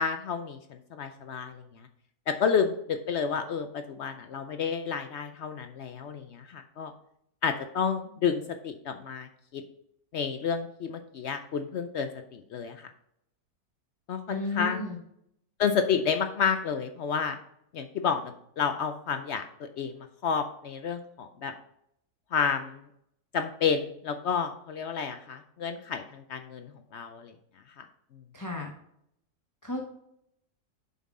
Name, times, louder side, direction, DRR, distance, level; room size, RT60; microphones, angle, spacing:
voice 1, 0.0-1.6 2.3-6.9 7.4-9.3 9.5-9.6 10.1-12.9 14.1-14.8 15.6-17.4 17.7-21.5 22.3-22.8 23.3-27.3 27.8-27.9, left 6 dB, 70° left, 7 dB, 0.6 m, -30 dB
voice 2, 14.3-15.0 28.3-28.7 29.6-29.8, left 2 dB, 20° left, 0 dB, 0.6 m, -33 dB
7.1 x 5.6 x 3.7 m, 0.74 s
omnidirectional pair, 1.6 m